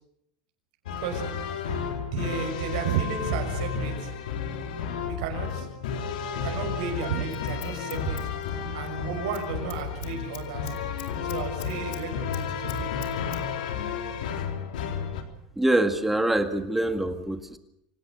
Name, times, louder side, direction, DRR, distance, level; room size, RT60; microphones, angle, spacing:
sound 1, 0.9-15.2, left 6 dB, 85° left, 3.7 m, -32 dB
voice 1, 2.0-4.1 5.0-5.7 6.3-8.2 8.7-10.7 11.2-13.3, right 7 dB, 65° right, 3 dB, 6.1 m, -33 dB
Scissors, 7.0-9.0 9.2-9.5 9.7-12.0 12.3-13.4 13.7-13.8, left 15 dB, 60° left, 3.1 m, -44 dB
voice 2, 15.6-17.6, right 1 dB, 5° right, 8 dB, 1.9 m, -24 dB
26.5 x 18.0 x 8.0 m, 0.76 s
supercardioid pair, 145°, 4 cm